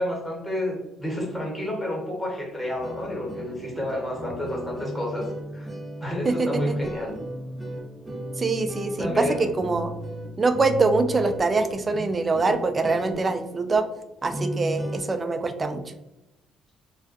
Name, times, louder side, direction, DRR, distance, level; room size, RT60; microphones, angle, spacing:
voice 1, 0.0-5.3 5.5-5.7 6.0-7.1 9.0-9.5, left 1 dB, 10° left, -3 dB, 1.1 m, -30 dB
sound 1, 2.7-15.0, right 1 dB, 10° right, 0.8 m, -35 dB
voice 2, 8.4-9.2 9.6-9.9 10.4-13.9 14.2-15.8, right 3 dB, 30° right, 7 dB, 0.3 m, -24 dB
2.4 x 2.2 x 2.4 m, 0.94 s
supercardioid pair, 75°, 0 cm